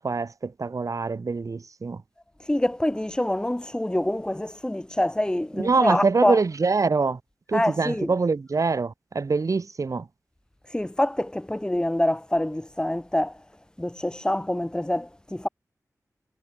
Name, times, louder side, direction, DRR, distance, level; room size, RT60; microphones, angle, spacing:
voice 1, 0.0-2.0 5.6-7.2 7.5-10.1, right 4 dB, 60° right, 3.4 m, -24 dB
voice 2, 2.5-6.4 7.5-8.1 10.7-13.4 13.8-15.5, left 1 dB, 15° left, 3.9 m, -26 dB
wide cardioid pair, 105°, 6 cm